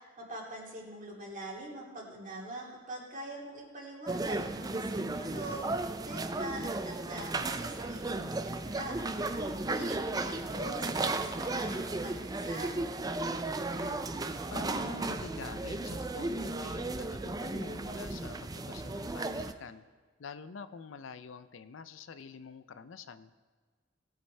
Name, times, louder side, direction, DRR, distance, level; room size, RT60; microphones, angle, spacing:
voice 1, 0.0-12.8, right 1 dB, 45° right, -2 dB, 2.4 m, -43 dB
sound 1, 4.1-19.5, right 2 dB, 20° right, 0.5 m, -35 dB
voice 2, 13.3-19.8 20.2-23.3, left 5 dB, 75° left, 12 dB, 0.5 m, -47 dB
19.0 x 8.1 x 3.4 m, 1.5 s
head